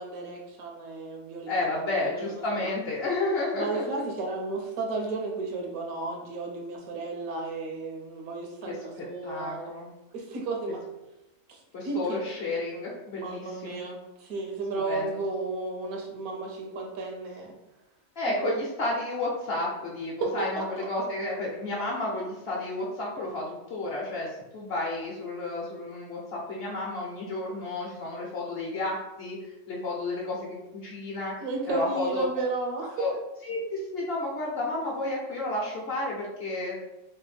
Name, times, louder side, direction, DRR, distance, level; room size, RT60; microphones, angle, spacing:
voice 1, 0.0-2.6 3.5-9.7 10.1-10.8 11.5-11.6 11.8-12.2 13.2-17.5 18.4-18.5 20.2-20.9 31.4-33.1, right 3 dB, 85° right, 0 dB, 1.2 m, -33 dB
voice 2, 1.5-3.8 8.7-9.9 11.7-13.8 14.9-15.2 18.2-31.3 31.7-32.2 33.0-33.1 33.4-36.8, left 2 dB, 55° left, -3 dB, 0.7 m, -32 dB
3.3 x 2.1 x 3.3 m, 0.95 s
omnidirectional pair, 1.5 m